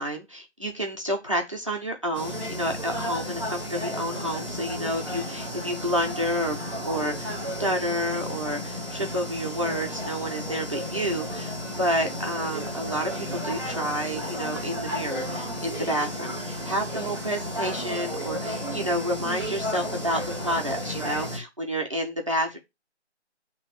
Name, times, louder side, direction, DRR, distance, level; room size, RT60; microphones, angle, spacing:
voice 1, 0.0-6.6 6.8-7.3 7.6-22.6, equal, 25° right, 1 dB, 1.0 m, -29 dB
sound 1, 2.1-21.4, equal, 10° left, 2.7 m, -33 dB
9.0 x 3.2 x 5.0 m, 0.23 s
figure-of-eight pair, 170°, 35 cm